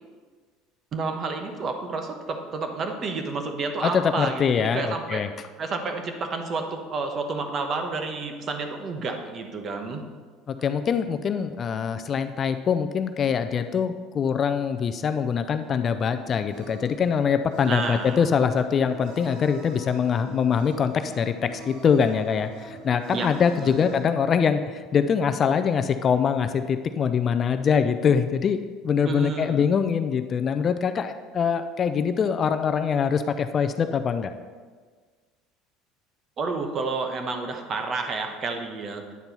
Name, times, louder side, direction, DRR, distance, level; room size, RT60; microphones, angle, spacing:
voice 1, 0.9-5.3 5.6-10.0 17.7-18.2 23.1-23.3 23.6-23.7 29.0-29.7 36.4-39.0, right 4 dB, 35° right, 5 dB, 1.0 m, -30 dB
voice 2, 3.8-5.3 10.5-34.3, left 7 dB, 35° left, 10 dB, 0.4 m, -24 dB
sound 1, 16.0-24.0, right 2 dB, 75° right, 1.6 m, -44 dB
9.4 x 4.4 x 5.4 m, 1.5 s
supercardioid pair, 120°, 0 cm